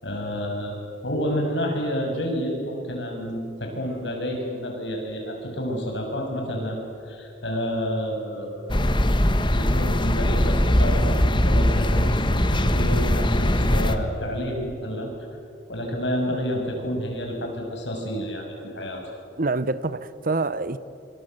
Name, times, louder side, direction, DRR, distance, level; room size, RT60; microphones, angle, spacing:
voice 1, 0.0-6.8 7.1-9.0 9.5-15.1 15.7-19.0, equal, 85° left, 7.4 m, -29 dB
sound 1, 8.7-14.0, left 1 dB, 25° left, 1.4 m, -21 dB
voice 2, 19.4-20.8, right 3 dB, 50° right, 1.0 m, -26 dB
26.0 x 26.0 x 8.1 m
head